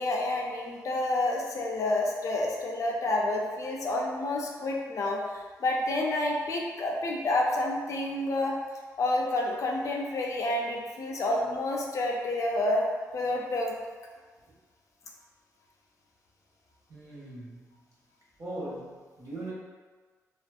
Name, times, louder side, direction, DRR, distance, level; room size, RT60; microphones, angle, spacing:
voice 1, 0.0-5.2 5.6-8.6 9.0-12.9 13.1-13.7, left 2 dB, 60° left, -1 dB, 0.4 m, -29 dB
voice 2, 16.9-17.6 18.4-19.5, right 1 dB, 50° right, -7 dB, 1.1 m, -39 dB
2.5 x 2.4 x 2.3 m, 1.5 s
supercardioid pair, 55°, 6 cm